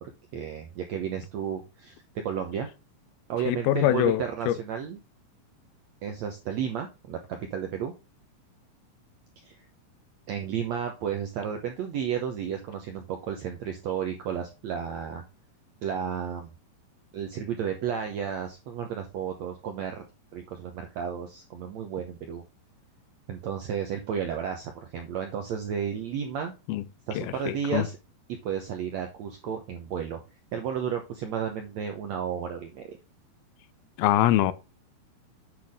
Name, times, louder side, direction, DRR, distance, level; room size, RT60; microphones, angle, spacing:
voice 1, 0.0-2.7 3.3-5.0 6.0-7.9 9.4-9.6 10.3-15.2 15.8-16.5 17.1-20.1 20.3-22.4 23.3-26.5 27.1-28.0 28.4-30.2 30.5-33.0, right 8 dB, 75° right, 1.6 m, -32 dB
voice 2, 3.5-4.5 26.7-26.8 27.2-27.8 34.0-34.5, left 13 dB, 85° left, 2.5 m, -24 dB
8.3 x 6.0 x 3.6 m
omnidirectional pair, 4.4 m